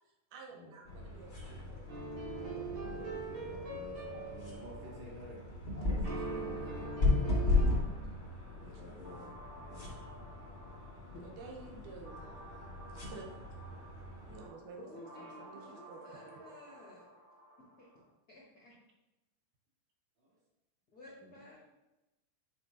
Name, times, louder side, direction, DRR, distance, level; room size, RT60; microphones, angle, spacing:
voice 1, 0.0-2.1 2.4-2.5 4.1-4.3 4.8-5.0 8.6-9.0 11.2-13.3 14.3-16.8, right 4 dB, 80° right, 0 dB, 2.4 m, -52 dB
sound 1, 0.8-14.5, left 3 dB, 35° left, 1.1 m, -36 dB
sound 2, 1.9-5.2 6.0-7.7, right 3 dB, 60° right, 2.5 m, -42 dB
voice 2, 2.3-7.7 8.4-10.0 20.2-20.3 21.2-21.5, equal, 40° right, -7 dB, 2.9 m, -52 dB
sound 3, 6.0-18.0, right 2 dB, 25° right, 2.1 m, -54 dB
voice 3, 14.8-17.1 17.8-17.9 18.3-18.7 20.9-21.7, left 2 dB, 70° left, -5 dB, 0.9 m, -53 dB
8.3 x 5.1 x 2.7 m, 1.0 s
omnidirectional pair, 3.7 m